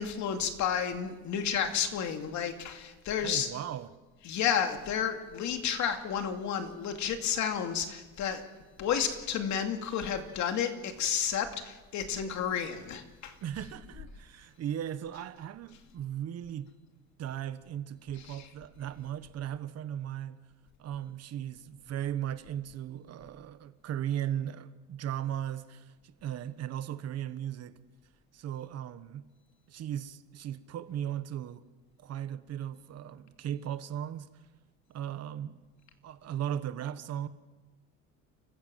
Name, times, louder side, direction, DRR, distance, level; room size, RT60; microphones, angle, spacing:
voice 1, 0.0-3.5 4.2-8.4 8.8-13.4 18.2-18.5, left 8 dB, 65° left, 2.5 m, -31 dB
voice 2, 3.2-3.9 13.4-16.7 17.2-20.4 20.8-27.7 28.3-29.2 29.7-31.6 32.0-34.3 34.9-35.6 36.0-37.3, right 10 dB, 55° right, 1.3 m, -37 dB
28.5 x 15.5 x 7.6 m
cardioid pair, 140°, 31 cm